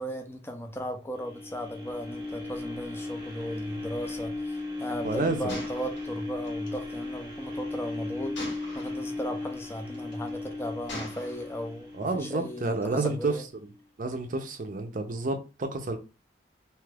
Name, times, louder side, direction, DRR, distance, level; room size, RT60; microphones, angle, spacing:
voice 1, 0.0-8.4 8.7-13.4, equal, 15° left, 0.4 m, -36 dB
sound 1, 1.1-13.2 13.7-13.8, left 2 dB, 20° right, 0.8 m, -37 dB
voice 2, 5.0-5.6 11.9-13.3 13.6-13.7 14.0-16.0, right 3 dB, 45° right, 0.5 m, -30 dB
Gunshot gunfire, 5.5-6.8 8.3-9.1 9.9-10.3 10.9-11.7, left 1 dB, 80° left, 1.3 m, -41 dB
2.8 x 2.3 x 3.3 m
head